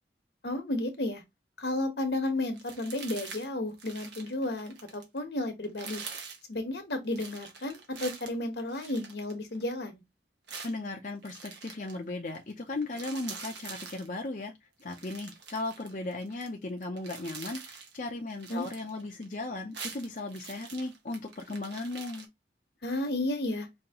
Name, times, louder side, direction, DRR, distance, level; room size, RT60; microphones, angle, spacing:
voice 1, 0.4-1.2 1.6-6.0 6.5-10.0 18.5-18.6 22.8-23.7, left 1 dB, 75° left, 1.2 m, -32 dB
sound 1, 2.5-3.5 3.7-5.2 5.6-6.4 7.1-9.7 10.5-12.0 12.3-12.5 12.8-14.1 14.8-16.5 16.8-18.0 18.3-19.4 19.6-22.3, right 5 dB, 90° right, 1.4 m, -45 dB
voice 2, 10.6-14.5 14.8-22.3, left 2 dB, 45° left, 0.6 m, -36 dB
5.3 x 2.8 x 2.9 m
head